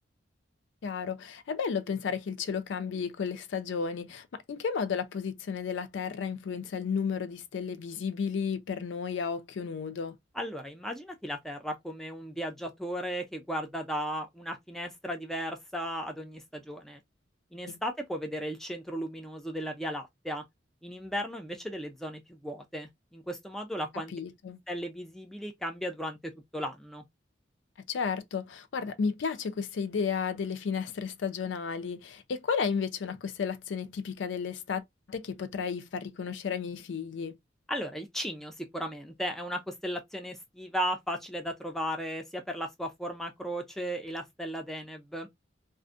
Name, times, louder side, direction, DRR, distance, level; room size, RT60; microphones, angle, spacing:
voice 1, 0.8-10.2 17.7-17.8 24.1-24.6 27.9-34.8 35.1-37.4, left 6 dB, 75° left, 0.4 m, -33 dB
voice 2, 10.3-17.0 17.5-20.4 20.8-24.1 24.7-27.0 37.7-45.3, equal, ahead, 0.4 m, -36 dB
2.5 x 2.1 x 2.4 m
head